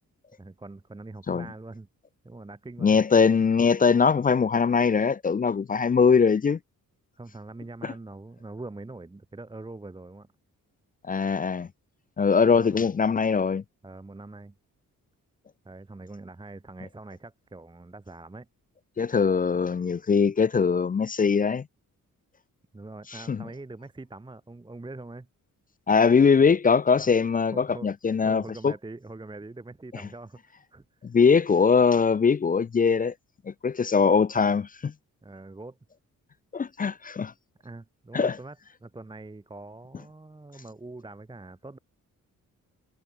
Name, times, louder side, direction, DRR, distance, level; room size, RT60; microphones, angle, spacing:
voice 1, 0.4-1.9 2.2-3.0 7.2-10.3 12.4-12.9 13.8-14.6 15.6-18.5 22.7-25.3 27.5-27.9 28.2-31.0 35.2-35.8 37.6-41.8, right 2 dB, 15° right, 1.0 m, -43 dB
voice 2, 2.8-6.6 11.1-11.7 12.2-13.6 19.0-21.6 23.3-23.4 25.9-28.7 31.0-33.1 33.5-34.9 36.5-37.3 38.1-38.4, left 5 dB, 25° left, 0.4 m, -21 dB
cardioid pair, 80°, 33 cm